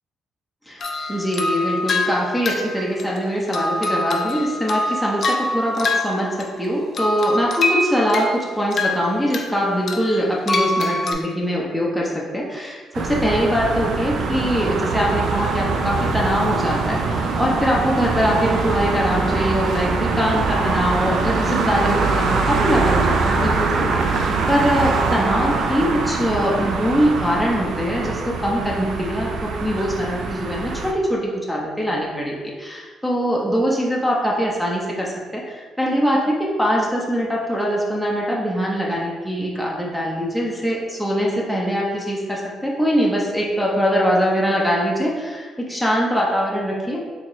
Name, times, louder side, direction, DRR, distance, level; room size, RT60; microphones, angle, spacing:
sound 1, 0.8-6.7 6.9-9.5 9.9-11.1, left 2 dB, 50° left, 0.5 m, -25 dB
voice 1, 1.1-47.0, equal, ahead, -3 dB, 0.7 m, -22 dB
sound 2, 12.9-30.9, right 4 dB, 70° right, 0.4 m, -23 dB
4.2 x 2.9 x 3.0 m, 1.5 s
cardioid pair, 90°, 0 cm